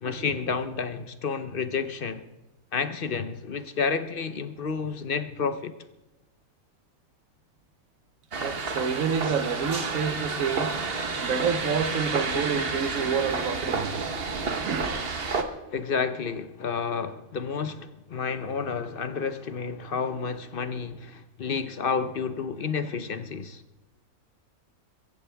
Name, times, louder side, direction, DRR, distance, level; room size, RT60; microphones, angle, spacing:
voice 1, 0.0-2.2 2.7-5.7 15.5-23.6, left 5 dB, 50° left, 0.8 m, -30 dB
sound 1, 8.3-15.4, right 4 dB, 45° right, 1.3 m, -30 dB
voice 2, 8.4-10.7 11.2-14.1 14.6-14.9, right 6 dB, 65° right, 1.4 m, -28 dB
22.5 x 14.5 x 3.4 m
omnidirectional pair, 1.5 m